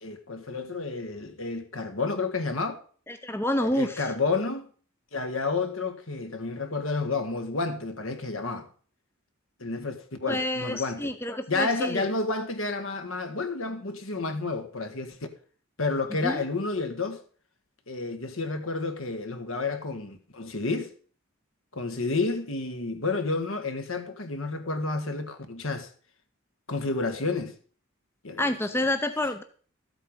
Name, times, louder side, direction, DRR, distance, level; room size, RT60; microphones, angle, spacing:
voice 1, 0.0-2.8 3.6-4.7 5.1-8.7 9.6-11.1 11.5-15.2 15.8-17.2 17.9-20.9 21.7-25.9 26.7-27.5 28.2-28.8, left 3 dB, 70° left, 1.7 m, -30 dB
voice 2, 3.1-4.1 10.3-12.0 16.2-16.4 28.4-29.4, left 1 dB, 10° left, 0.7 m, -28 dB
13.5 x 8.1 x 5.3 m
head